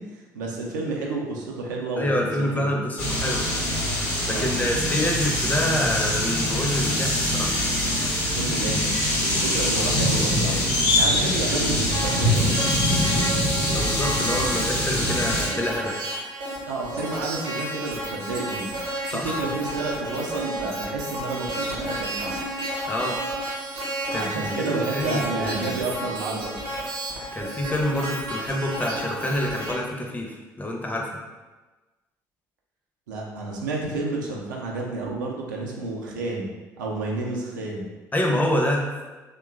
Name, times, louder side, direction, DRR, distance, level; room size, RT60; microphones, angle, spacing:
voice 1, 0.0-2.7 4.3-4.6 8.3-8.9 9.2-10.6 11.0-12.5 16.7-18.7 19.1-22.4 24.1-26.6 33.1-37.9, right 3 dB, 80° right, -2 dB, 0.4 m, -30 dB
voice 2, 2.0-3.5 4.3-7.5 13.7-16.0 19.1-19.3 22.9-23.2 24.1-25.8 27.3-31.1 38.1-38.9, left 1 dB, 15° left, 0 dB, 0.5 m, -27 dB
sound 1, 3.0-15.5, left 1 dB, 70° left, 0.8 m, -23 dB
sound 2, 11.9-29.7, right 1 dB, 60° right, 0.8 m, -31 dB
2.9 x 2.2 x 2.3 m, 1.2 s
figure-of-eight pair, 50°, 10 cm